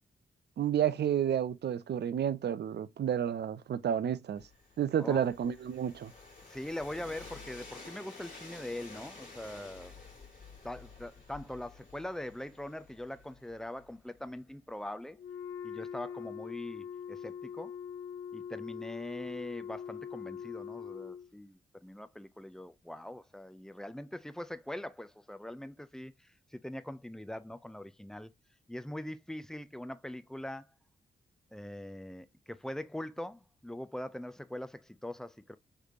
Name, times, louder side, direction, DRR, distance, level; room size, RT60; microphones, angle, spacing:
voice 1, 0.6-4.4 4.8-6.1, right 9 dB, 55° right, 0.4 m, -30 dB
Train, 4.4-14.2, left 3 dB, 40° left, 1.8 m, -51 dB
voice 2, 5.0-5.3 6.5-9.9 10.6-15.2 15.6-17.7 18.3-26.1 26.5-28.3 28.7-30.7 31.5-35.6, left 1 dB, 5° left, 0.4 m, -42 dB
Wind instrument woodwind instrument, 15.1-21.3, left 7 dB, 80° left, 0.8 m, -42 dB
3.3 x 3.2 x 2.4 m
supercardioid pair, 45°, 21 cm